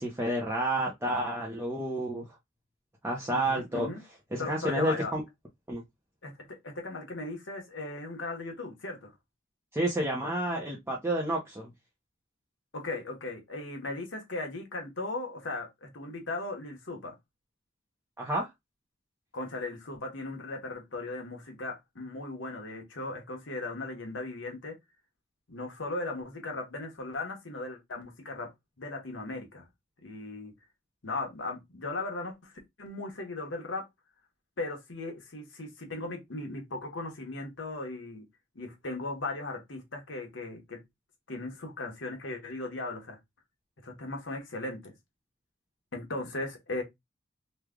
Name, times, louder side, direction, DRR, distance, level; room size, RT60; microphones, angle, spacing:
voice 1, 0.0-2.3 3.0-3.9 4.3-5.2 5.7-5.8 9.7-11.7 18.2-18.5, right 1 dB, 15° right, 0.7 m, -30 dB
voice 2, 3.3-4.0 4.4-5.1 6.2-9.1 12.7-17.2 19.3-24.8 25.5-28.5 28.8-29.6 30.0-30.5 31.0-32.5 32.8-33.9 34.6-38.2 38.5-40.8 41.3-43.2 43.8-44.9 45.9-46.8, left 2 dB, 70° left, 1.2 m, -37 dB
3.2 x 2.3 x 3.6 m
head